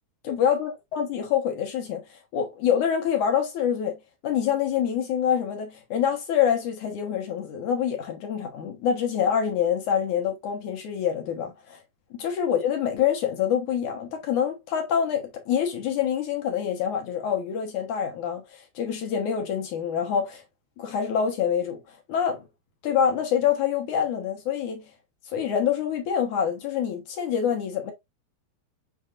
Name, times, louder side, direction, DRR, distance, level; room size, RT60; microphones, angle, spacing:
voice 1, 0.2-11.8 12.1-20.4 20.8-21.8 22.1-22.4 22.8-24.9 25.3-27.9, left 8 dB, 65° left, 2.2 m, -26 dB
8.2 x 5.2 x 2.5 m
omnidirectional pair, 4.7 m